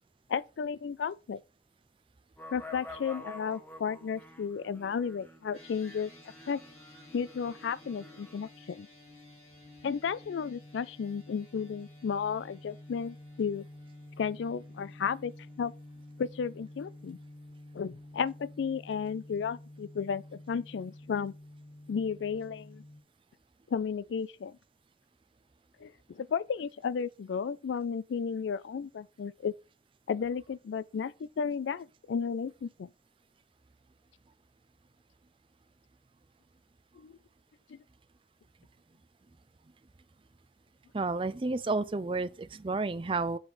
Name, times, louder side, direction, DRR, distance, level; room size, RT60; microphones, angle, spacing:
voice 1, 0.3-1.4 2.5-6.1 6.5-6.6 7.1-8.9 9.8-13.7 14.2-15.3 15.6-15.7 16.2-17.2 17.7-21.3 21.9-22.8 23.7-24.5 25.8-29.5 30.1-32.9 37.0-37.1 37.7-37.8, left 6 dB, 85° left, 0.4 m, -33 dB
sound 1, 2.4-8.5, left 2 dB, 10° left, 1.1 m, -49 dB
sound 2, 5.5-23.0, left 1 dB, 35° left, 2.1 m, -51 dB
voice 2, 40.9-43.4, right 3 dB, 30° right, 0.4 m, -31 dB
7.9 x 4.0 x 4.8 m
head